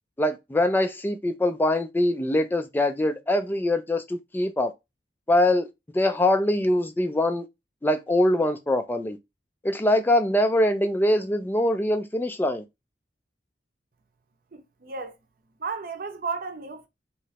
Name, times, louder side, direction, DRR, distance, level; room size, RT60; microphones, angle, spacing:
voice 1, 0.2-4.7 5.3-7.5 7.8-9.2 9.6-12.6, left 1 dB, 10° left, 0.3 m, -23 dB
voice 2, 14.5-15.1 15.6-16.9, right 4 dB, 55° right, 0.7 m, -33 dB
3.1 x 2.9 x 2.8 m
head